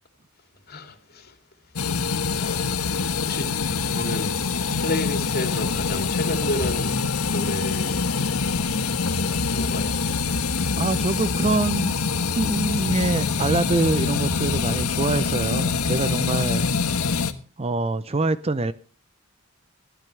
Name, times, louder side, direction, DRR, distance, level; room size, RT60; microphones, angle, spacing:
voice 1, 0.6-1.4 1.6-2.0 2.3-3.5 3.8-4.3 4.8-7.0 7.3-8.4 9.1-10.2, left 1 dB, 45° left, 3.1 m, -32 dB
sound 1, 1.8-17.3, left 4 dB, 85° left, 1.4 m, -25 dB
voice 2, 10.8-12.0 12.3-16.7 17.6-18.7, right 2 dB, 25° right, 0.6 m, -24 dB
21.0 x 14.0 x 3.4 m
head